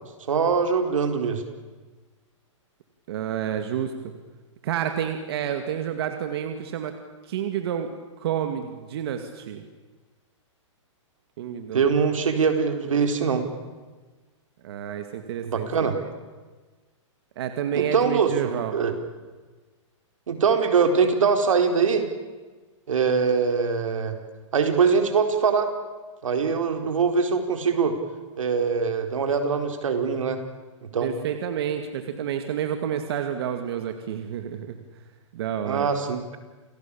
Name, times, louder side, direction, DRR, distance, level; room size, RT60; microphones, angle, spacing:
voice 1, 0.3-1.4 11.7-13.5 15.5-16.0 17.7-19.0 20.3-22.1 22.9-24.1 24.5-25.7 26.2-28.0 28.4-30.4 30.8-31.1 35.6-36.2, right 5 dB, 85° right, 6 dB, 4.5 m, -23 dB
voice 2, 3.1-4.1 4.6-6.9 7.2-7.9 8.2-9.6 11.4-11.9 14.6-16.1 17.4-18.7 31.0-34.8 35.3-35.9, right 9 dB, 50° right, 6 dB, 2.3 m, -29 dB
28.5 x 18.5 x 8.7 m, 1.3 s
hypercardioid pair, 160°, 16 cm